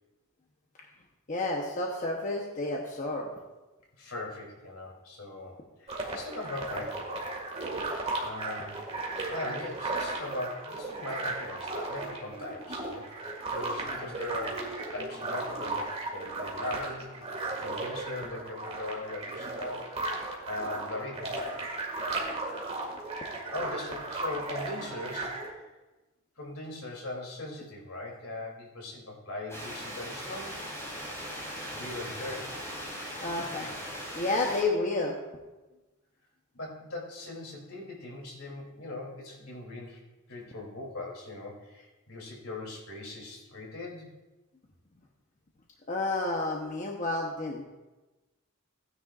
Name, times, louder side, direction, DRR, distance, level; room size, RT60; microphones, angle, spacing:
voice 1, 1.3-3.3 33.2-33.7 34.1-35.2 45.9-47.6, left 2 dB, 35° left, 0 dB, 0.9 m, -30 dB
voice 2, 4.0-7.3 8.2-8.8 9.3-14.6 14.9-17.1 17.6-19.8 20.4-21.6 23.5-25.3 26.4-30.6 31.7-32.5 33.4-33.7 36.5-40.0 40.3-44.1, left 2 dB, 75° left, -1 dB, 3.0 m, -40 dB
sound 1, 5.9-25.5, right 2 dB, 30° right, 2.0 m, -35 dB
sound 2, 29.5-34.6, equal, 15° left, 3.6 m, -39 dB
16.0 x 9.9 x 2.5 m, 1.1 s
head